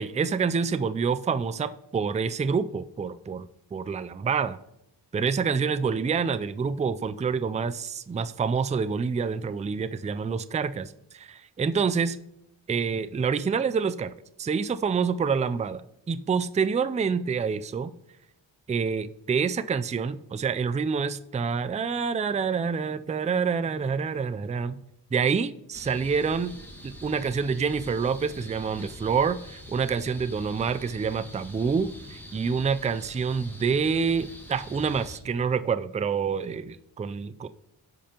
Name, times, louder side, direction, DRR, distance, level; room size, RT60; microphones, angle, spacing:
voice 1, 0.0-4.6 5.1-12.2 12.7-14.1 14.4-17.9 18.7-24.8 25.1-26.6 26.8-37.5, right 5 dB, 15° right, 0.3 m, -27 dB
sound 1, 25.7-35.2, left 1 dB, 5° left, 2.0 m, -44 dB
14.0 x 5.1 x 2.9 m
cardioid pair, 50°, 48 cm